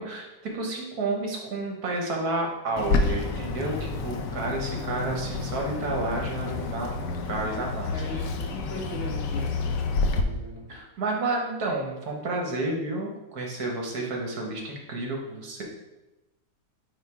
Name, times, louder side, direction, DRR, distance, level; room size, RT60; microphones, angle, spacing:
voice 1, 0.0-8.2 10.7-15.6, right 2 dB, 65° right, 0 dB, 1.6 m, -31 dB
Bird, 2.8-10.2, left 3 dB, 90° left, 1.3 m, -29 dB
voice 2, 7.9-10.7, left 1 dB, 45° left, -3 dB, 1.0 m, -39 dB
8.4 x 3.0 x 4.7 m, 1.0 s
omnidirectional pair, 1.8 m